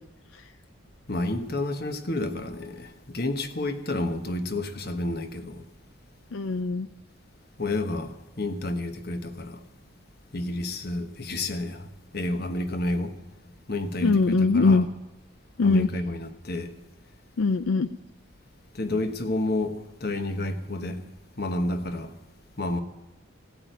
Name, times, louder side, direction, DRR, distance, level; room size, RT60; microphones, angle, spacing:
voice 1, 1.1-5.6 7.6-9.6 10.3-11.9 12.1-13.1 13.7-14.8 15.6-16.7 18.7-21.0 21.4-22.1 22.6-22.8, left 2 dB, 50° left, 1.2 m, -30 dB
voice 2, 6.3-6.9 14.0-14.9 15.6-15.9 17.4-17.9, left 4 dB, 70° left, 0.5 m, -21 dB
16.0 x 8.8 x 9.2 m
head